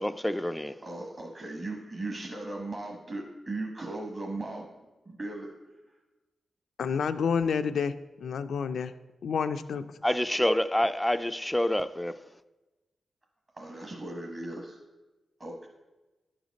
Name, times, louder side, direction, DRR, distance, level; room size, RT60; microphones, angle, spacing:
voice 1, 0.0-0.7 10.0-12.1, left 1 dB, 10° left, 0.3 m, -27 dB
voice 2, 0.8-4.7 5.1-5.5 13.5-14.8 15.4-15.7, right 2 dB, 35° right, 1.2 m, -37 dB
voice 3, 6.8-7.9 8.2-8.9 9.2-9.8, left 6 dB, 85° left, 0.4 m, -29 dB
11.0 x 4.0 x 5.1 m
cardioid pair, 75°, 0 cm